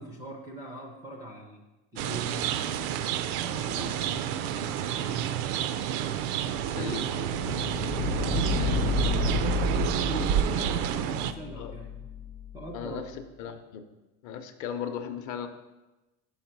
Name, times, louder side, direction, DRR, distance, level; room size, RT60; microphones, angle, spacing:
voice 1, 0.0-1.6 1.9-2.8 3.3-5.4 6.3-12.1 12.5-13.0, right 1 dB, 10° right, 0 dB, 0.3 m, -42 dB
sound 1, 2.0-11.3, right 9 dB, 85° right, 0.5 m, -29 dB
sound 2, 5.9-12.7, left 6 dB, 85° left, 0.8 m, -32 dB
voice 2, 6.7-7.0 11.6-11.7 12.7-13.0 13.4-13.8 14.2-15.5, left 8 dB, 45° left, 7 dB, 0.6 m, -36 dB
5.6 x 4.7 x 5.9 m, 1.1 s
cardioid pair, 150°, 43 cm